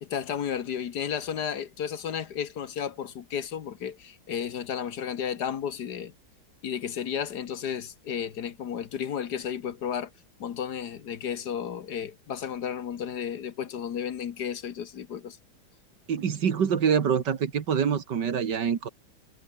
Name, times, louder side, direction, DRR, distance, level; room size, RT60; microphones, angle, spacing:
voice 1, 0.0-6.1 6.6-10.1 10.4-15.4, left 8 dB, 60° left, 1.6 m, -33 dB
voice 2, 16.1-18.9, right 7 dB, 65° right, 2.2 m, -25 dB
omnidirectional pair, 2.1 m